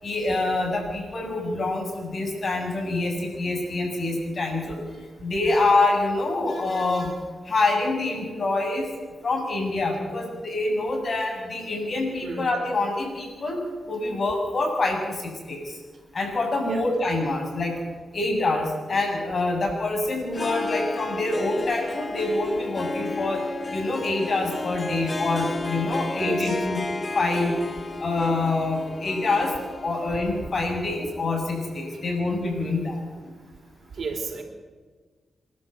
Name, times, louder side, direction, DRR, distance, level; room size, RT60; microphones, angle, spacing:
voice 1, 0.0-4.8 5.2-7.2 7.5-8.8 9.2-13.6 13.9-15.7 16.1-17.8 18.1-23.4 23.7-26.8 27.1-27.6 28.0-29.5 29.8-33.0, left 2 dB, 50° left, 2 dB, 7.4 m, -26 dB
Harp, 20.3-32.2, left 3 dB, 35° left, 1.1 m, -33 dB
voice 2, 25.8-27.2 34.0-34.4, right 4 dB, 65° right, 4 dB, 4.0 m, -34 dB
28.0 x 12.0 x 8.1 m, 1.4 s
cardioid pair, 70°, 0 cm